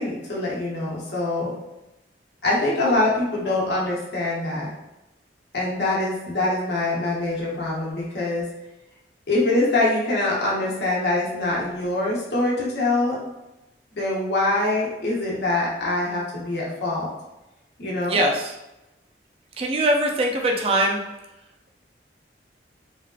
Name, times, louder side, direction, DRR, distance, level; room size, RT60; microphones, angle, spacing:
voice 1, 0.0-1.5 2.4-4.7 5.5-8.4 9.3-13.2 14.0-17.1 17.8-18.2, left 2 dB, 65° left, -5 dB, 0.9 m, -24 dB
voice 2, 18.1-18.5 19.6-21.0, right 1 dB, 30° right, 1 dB, 0.3 m, -21 dB
3.3 x 2.3 x 2.3 m, 0.96 s
head